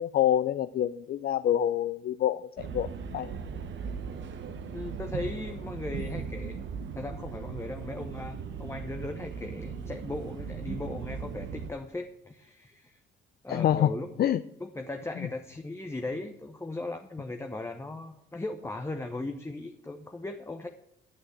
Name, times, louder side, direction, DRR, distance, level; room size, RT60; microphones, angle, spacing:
voice 1, 0.0-3.3 13.5-13.9 14.2-14.4, left 11 dB, 50° left, 13 dB, 0.4 m, -26 dB
sound 1, 2.6-11.7, right 6 dB, 70° right, 1.0 m, -38 dB
voice 2, 4.7-6.6 6.9-13.0 13.4-14.1 14.6-20.7, left 2 dB, 15° left, 6 dB, 0.9 m, -38 dB
9.9 x 6.3 x 7.9 m, 0.79 s
cardioid pair, 90°, 20 cm